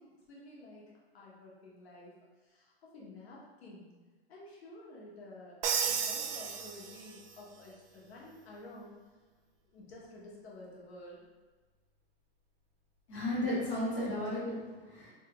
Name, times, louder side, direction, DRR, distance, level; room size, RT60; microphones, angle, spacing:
voice 1, 0.0-2.1 2.4-3.9 4.3-9.0 9.7-11.2, left 2 dB, 80° left, -5 dB, 1.2 m, -51 dB
Crash cymbal, 5.6-7.4, right 6 dB, 65° right, 0.5 m, -33 dB
voice 2, 13.1-15.1, left 1 dB, 25° left, -9 dB, 1.1 m, -34 dB
3.2 x 2.4 x 3.0 m, 1.3 s
supercardioid pair, 175°, 31 cm